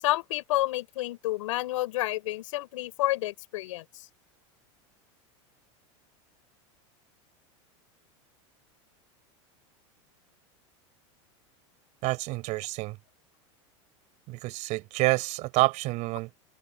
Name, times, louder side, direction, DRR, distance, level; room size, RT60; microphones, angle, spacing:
voice 1, 0.0-3.8, left 17 dB, 80° left, 7.5 m, -29 dB
voice 2, 12.0-13.0 14.3-16.4, right 21 dB, 45° right, 6.2 m, -28 dB
open air
supercardioid pair, 145°, 16 cm